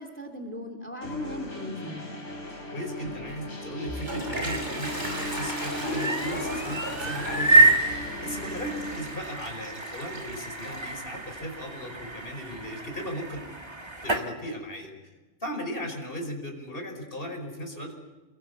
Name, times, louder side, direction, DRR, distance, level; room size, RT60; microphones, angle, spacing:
voice 1, 0.0-2.0, left 1 dB, 10° left, 6 dB, 2.9 m, -37 dB
sound 1, 1.0-9.0, left 1 dB, 65° left, 4.2 m, -39 dB
voice 2, 2.7-7.8 8.2-13.4 14.0-14.9 15.4-17.9, equal, 45° left, 3 dB, 5.3 m, -37 dB
Toilet flush, 3.6-12.5, equal, 35° right, 5.4 m, -36 dB
sound 2, 4.2-14.3, right 2 dB, 20° right, 1.9 m, -28 dB
29.0 x 22.0 x 8.2 m, 1.2 s
omnidirectional pair, 1.3 m